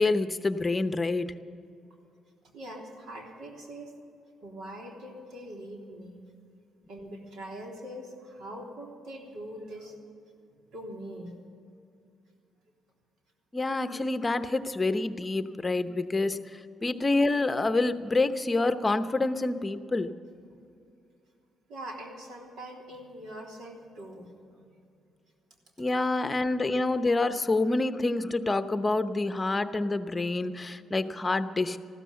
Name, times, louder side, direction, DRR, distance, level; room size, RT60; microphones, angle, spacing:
voice 1, 0.0-1.3 13.5-20.1 25.8-31.8, left 2 dB, 20° left, 10 dB, 0.8 m, -27 dB
voice 2, 2.5-3.9 4.4-6.2 6.9-9.9 10.7-11.3 21.7-24.3 24.6-24.7, right 1 dB, 80° right, 0 dB, 3.4 m, -42 dB
15.0 x 13.0 x 6.9 m, 2.5 s
cardioid pair, 90°, 0 cm